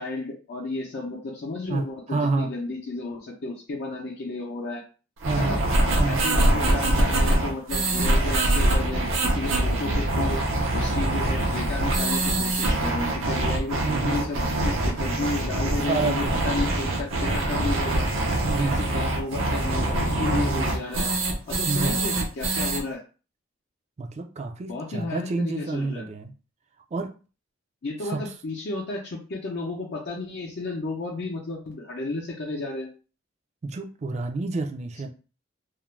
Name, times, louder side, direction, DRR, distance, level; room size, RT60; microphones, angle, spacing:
voice 1, 0.0-4.8 5.4-5.6 6.0-10.4 10.7-18.1 18.4-21.2 21.5-23.0 24.7-26.1 27.8-32.9, left 3 dB, 55° left, -2 dB, 0.5 m, -33 dB
voice 2, 1.7-2.5 5.3-5.6 6.0-6.3 13.9-14.2 15.9-16.3 18.4-18.8 20.3-20.7 21.7-22.0 24.0-26.3 26.9-27.1 28.0-28.2 33.6-35.1, right 3 dB, 35° right, 6 dB, 0.4 m, -29 dB
sound 1, 5.2-22.8, right 1 dB, 75° right, 0.6 m, -24 dB
2.4 x 2.1 x 3.1 m, 0.35 s
head